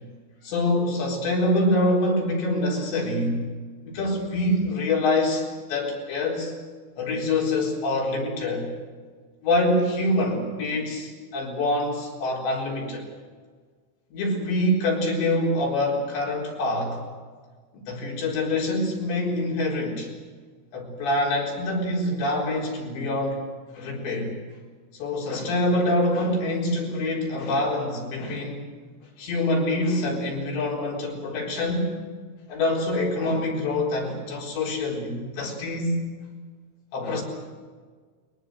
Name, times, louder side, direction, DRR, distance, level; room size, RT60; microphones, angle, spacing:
voice 1, 0.4-3.4 3.8-6.5 7.0-8.7 9.4-13.1 14.1-17.0 17.9-20.1 20.7-23.4 23.7-24.3 24.9-28.6 29.2-32.0 32.5-36.1 36.9-37.2, left 1 dB, 70° left, -2 dB, 6.6 m, -25 dB
23.0 x 20.5 x 7.9 m, 1.5 s
omnidirectional pair, 5.3 m